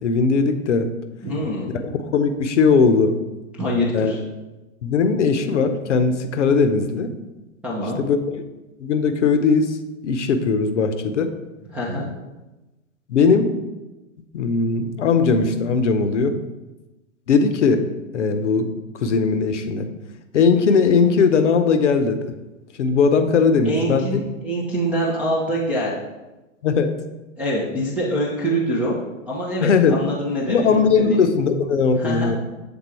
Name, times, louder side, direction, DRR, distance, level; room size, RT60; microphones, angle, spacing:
voice 1, 0.0-0.9 1.7-3.2 3.9-4.1 4.8-7.1 8.0-8.4 8.8-9.8 10.0-11.3 13.1-13.5 14.3-16.4 17.3-17.9 18.1-18.7 19.0-19.9 20.3-22.3 22.8-24.2 26.6-26.9 29.6-30.0 30.5-32.4, left 5 dB, 60° left, 8 dB, 0.7 m, -19 dB
voice 2, 1.2-1.7 3.6-4.2 7.6-8.0 11.7-12.1 23.6-25.9 27.4-29.0 29.3-30.7 31.1-31.3 32.0-32.3, equal, 5° right, -5 dB, 0.4 m, -24 dB
7.1 x 3.6 x 4.5 m, 1.1 s
figure-of-eight pair, 105°, 40 cm